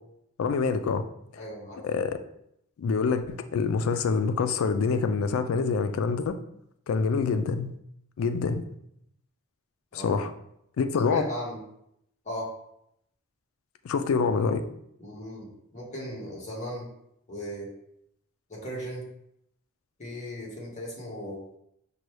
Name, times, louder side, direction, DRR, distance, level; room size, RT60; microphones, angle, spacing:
voice 1, 0.4-1.1 1.8-2.2 2.8-6.4 6.9-7.7 8.2-8.6 9.9-10.3 10.8-11.3 13.8-14.6, left 5 dB, 70° left, 9 dB, 0.3 m, -26 dB
voice 2, 1.3-1.8 9.9-10.2 11.0-11.6 12.2-12.5 15.0-16.9 17.3-17.7 18.5-19.1 20.0-21.4, equal, 35° left, -5 dB, 1.3 m, -37 dB
5.3 x 2.2 x 3.1 m, 0.75 s
head